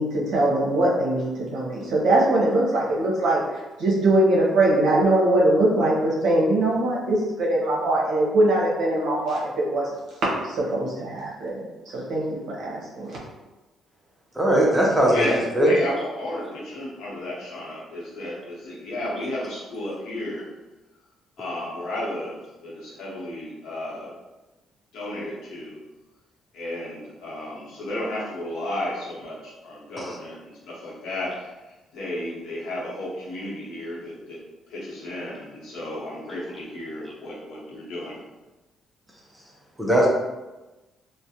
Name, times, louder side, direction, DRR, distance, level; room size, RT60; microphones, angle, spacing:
voice 1, 0.0-9.9 10.2-11.6 11.8-13.2, right 1 dB, 65° right, -4 dB, 0.8 m, -22 dB
voice 2, 14.3-15.3 15.6-15.7 30.0-30.1 39.8-40.1, right 1 dB, 5° right, -3 dB, 0.4 m, -19 dB
voice 3, 15.1-20.5 21.4-24.1 24.9-25.8 26.5-34.4 34.7-38.2, left 1 dB, 70° left, -5 dB, 0.9 m, -33 dB
2.4 x 2.1 x 2.7 m, 1.1 s
cardioid pair, 175°, 0 cm